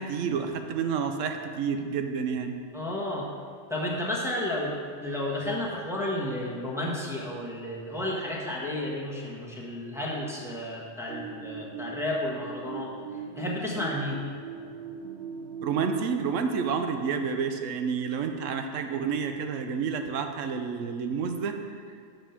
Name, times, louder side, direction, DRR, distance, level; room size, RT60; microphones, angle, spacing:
voice 1, 0.0-2.6 15.6-21.6, right 6 dB, 80° right, 6 dB, 1.0 m, -29 dB
voice 2, 2.7-3.3 3.7-12.9 13.4-14.2, left 1 dB, ahead, -5 dB, 1.2 m, -32 dB
sound 1, 11.1-16.2, right 5 dB, 55° right, 1.1 m, -39 dB
7.3 x 5.2 x 5.7 m, 2.2 s
omnidirectional pair, 1.3 m